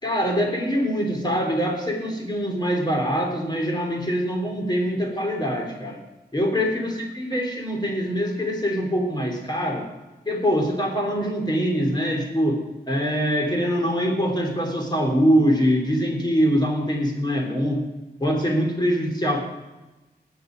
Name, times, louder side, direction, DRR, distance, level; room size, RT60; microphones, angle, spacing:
voice 1, 0.0-6.0 6.3-9.9 10.3-17.8 18.2-19.4, equal, 25° left, 2 dB, 3.5 m, -23 dB
19.0 x 6.7 x 6.5 m, 1.1 s
wide cardioid pair, 90°, 18 cm